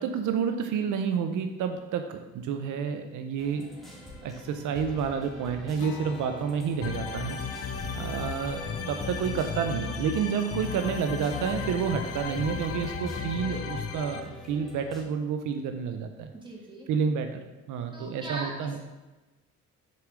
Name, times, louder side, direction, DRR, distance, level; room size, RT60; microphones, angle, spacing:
voice 1, 0.0-3.7 4.2-7.4 7.9-16.3 16.9-17.4 17.7-18.8, right 6 dB, 85° right, 6 dB, 0.7 m, -29 dB
sound 1, 3.4-15.0, left 1 dB, ahead, 2.4 m, -45 dB
Acoustic guitar, 5.8-10.7, left 7 dB, 80° left, 1.2 m, -48 dB
sound 2, 6.8-14.2, left 6 dB, 50° left, 0.9 m, -35 dB
voice 2, 16.4-16.9 17.9-18.8, right 2 dB, 15° right, -3 dB, 2.7 m, -39 dB
7.0 x 4.8 x 6.1 m, 1.1 s
cardioid pair, 90°, 30 cm